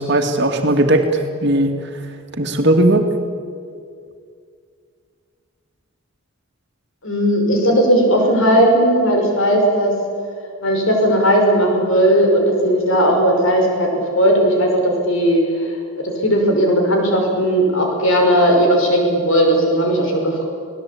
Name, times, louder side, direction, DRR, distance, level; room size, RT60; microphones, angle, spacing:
voice 1, 0.0-1.7 2.4-3.1, right 1 dB, 50° right, 4 dB, 2.4 m, -17 dB
voice 2, 7.0-9.9 10.6-15.7 16.0-20.4, equal, 60° left, 2 dB, 5.9 m, -16 dB
29.5 x 19.0 x 8.6 m, 2.3 s
head